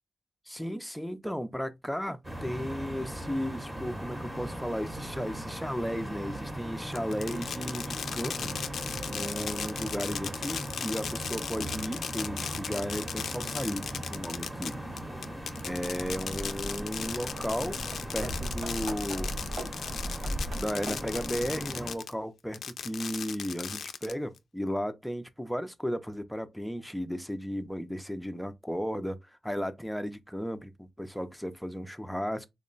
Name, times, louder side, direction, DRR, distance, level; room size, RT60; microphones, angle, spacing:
voice 1, 0.5-8.6 9.1-14.8 15.7-17.8 18.1-19.3 20.5-29.2 29.4-32.5, equal, ahead, 0.4 m, -35 dB
sound 1, 2.2-21.9, right 1 dB, 15° right, 0.8 m, -39 dB
Fireworks, 6.9-22.1 22.5-24.4, left 7 dB, 75° left, 0.3 m, -37 dB
sound 2, 15.1-15.2 15.7-21.6, right 1 dB, 75° right, 1.5 m, -38 dB
3.7 x 2.1 x 3.8 m
wide cardioid pair, 140°, 0 cm